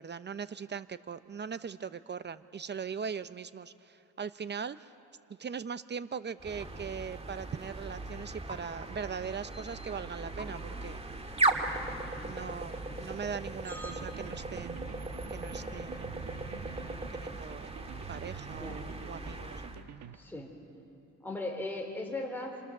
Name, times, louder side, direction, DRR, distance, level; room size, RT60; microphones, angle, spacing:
voice 1, 0.0-4.9 5.4-11.0 12.2-16.2 17.1-17.8 18.1-19.6, right 6 dB, 35° right, 13 dB, 0.7 m, -40 dB
sound 1, 6.4-19.8, right 2 dB, 20° right, 2.1 m, -37 dB
Wind instrument woodwind instrument, 11.6-17.5, left 3 dB, 35° left, 5.5 m, -56 dB
sound 2, 13.6-20.2, right 9 dB, 70° right, 1.1 m, -48 dB
voice 2, 20.1-20.5 21.2-22.6, left 2 dB, 5° left, 0 dB, 4.1 m, -38 dB
30.0 x 27.0 x 6.7 m, 2.6 s
cardioid pair, 90°, 30 cm